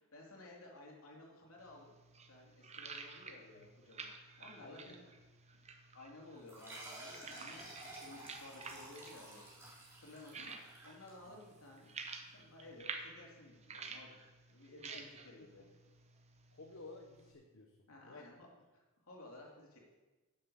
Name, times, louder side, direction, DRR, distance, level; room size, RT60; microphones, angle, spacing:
voice 1, 0.0-1.9 2.3-5.0 5.9-11.9 12.2-15.6 17.9-19.8, left 2 dB, 75° left, -1 dB, 3.0 m, -56 dB
sound 1, 1.6-17.3, right 4 dB, 30° right, 1.0 m, -52 dB
voice 2, 4.6-4.9 7.8-8.0 14.9-15.5 16.5-17.8 18.0-18.3, left 3 dB, 60° left, 2 dB, 1.1 m, -54 dB
sound 2, 6.5-11.6, right 1 dB, 10° right, 3.1 m, -52 dB
11.0 x 7.3 x 6.6 m, 1.2 s
head